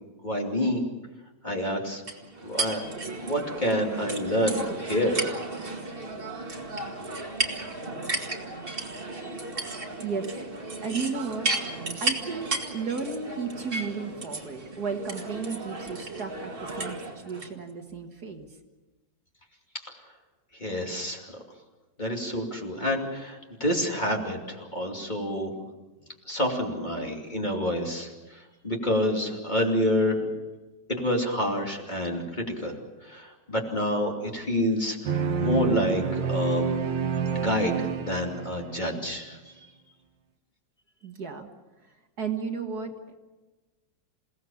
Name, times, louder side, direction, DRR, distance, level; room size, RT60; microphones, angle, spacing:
voice 1, 0.2-0.8 1.4-2.0 2.4-2.8 3.2-5.3 20.6-21.2 22.0-25.5 26.3-30.3 30.9-32.7 33.0-36.6 37.3-39.4, left 1 dB, 25° left, 0 dB, 2.8 m, -28 dB
sound 1, 2.1-17.5, right 2 dB, 30° right, 2.1 m, -34 dB
voice 2, 10.8-11.5 12.0-18.5 41.0-41.5 42.2-42.9, right 5 dB, 55° right, 4 dB, 2.2 m, -33 dB
sound 2, 35.1-38.8, right 6 dB, 75° right, 1.9 m, -28 dB
28.0 x 17.5 x 7.1 m, 1.2 s
omnidirectional pair, 2.0 m